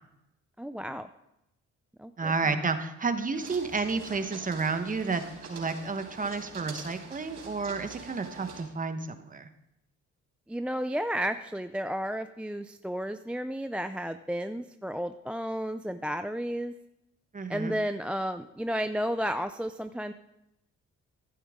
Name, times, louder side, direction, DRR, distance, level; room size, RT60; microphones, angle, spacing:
voice 1, 0.6-1.1 2.0-2.5 10.5-16.7 17.5-20.1, equal, 5° right, 9 dB, 0.4 m, -32 dB
voice 2, 2.2-5.2 5.5-9.5 17.3-17.7, right 4 dB, 25° right, 8 dB, 1.1 m, -31 dB
sound 1, 3.3-8.6, right 4 dB, 60° right, 4.1 m, -45 dB
15.0 x 11.0 x 3.7 m, 0.85 s
cardioid pair, 90°, 30 cm